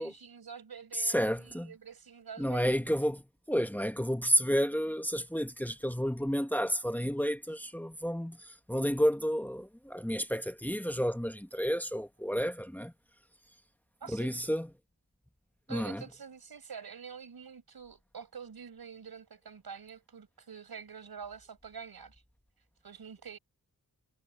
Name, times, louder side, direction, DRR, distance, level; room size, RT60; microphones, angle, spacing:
voice 1, 0.0-2.9 14.0-14.3 15.7-22.2 22.8-23.4, right 6 dB, 80° right, 5.7 m, -47 dB
voice 2, 1.0-1.7 2.4-12.9 14.1-14.7 15.7-16.0, equal, 5° left, 1.7 m, -31 dB
cardioid pair, 55°, 36 cm